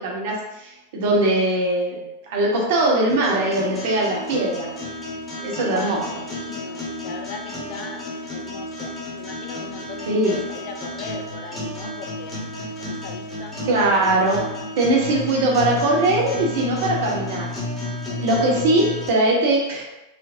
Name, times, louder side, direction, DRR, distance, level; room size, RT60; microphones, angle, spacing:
voice 1, 0.0-4.7 5.4-6.0 10.1-10.4 13.7-14.5 14.8-17.5 18.2-19.8, right 2 dB, 55° right, -2 dB, 0.8 m, -21 dB
sound 1, 3.1-19.1, left 1 dB, 15° left, 0.9 m, -32 dB
voice 2, 5.7-8.0 8.3-12.5 12.8-13.6, left 5 dB, 45° left, 4 dB, 0.4 m, -38 dB
4.3 x 2.0 x 2.6 m, 0.97 s
figure-of-eight pair, 90°, 0 cm